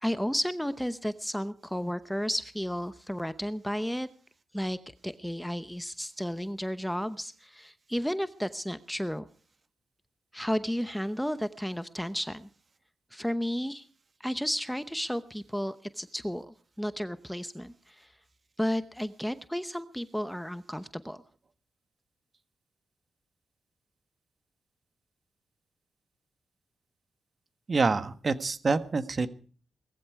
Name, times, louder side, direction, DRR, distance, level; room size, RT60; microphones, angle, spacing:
voice 1, 0.0-4.1 4.5-4.8 5.0-9.3 10.3-12.5 13.1-13.9 14.2-18.1 18.6-21.2, equal, ahead, 12 dB, 0.8 m, -33 dB
voice 2, 27.7-29.3, right 4 dB, 40° right, 10 dB, 1.5 m, -26 dB
19.0 x 14.5 x 4.7 m, 0.42 s
cardioid pair, 85°, 0 cm